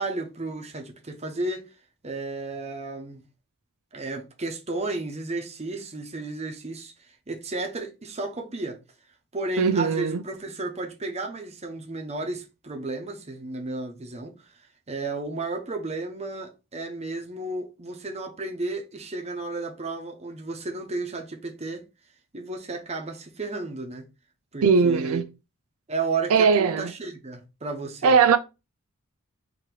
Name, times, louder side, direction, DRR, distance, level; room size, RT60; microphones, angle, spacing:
voice 1, 0.0-1.7 2.0-3.2 3.9-6.9 7.3-8.8 9.3-14.3 14.9-21.8 22.3-24.1 24.5-25.2 25.9-28.1, right 3 dB, 30° right, 0.9 m, -33 dB
voice 2, 9.6-10.2 24.6-25.2 26.3-26.9 28.0-28.4, right 5 dB, 80° right, 0.4 m, -19 dB
4.5 x 2.9 x 3.9 m
head